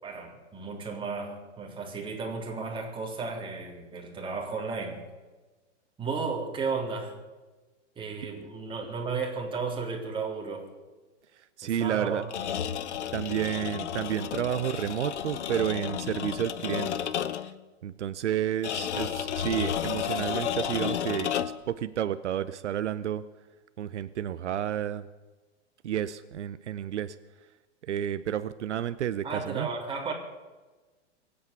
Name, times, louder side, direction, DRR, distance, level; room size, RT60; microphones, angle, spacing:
voice 1, 0.0-5.0 6.0-7.1 8.0-10.7 11.6-12.3 18.9-19.2 29.2-30.1, right 4 dB, 15° right, -1 dB, 3.7 m, -34 dB
voice 2, 11.6-12.2 13.1-16.9 17.8-23.2 23.8-25.1 25.8-27.2 27.8-29.7, right 10 dB, 75° right, 13 dB, 0.8 m, -31 dB
sound 1, 12.2-17.6 18.6-21.7, left 9 dB, 70° left, 1.1 m, -32 dB
23.0 x 8.8 x 7.0 m, 1.2 s
hypercardioid pair, 120°, 35 cm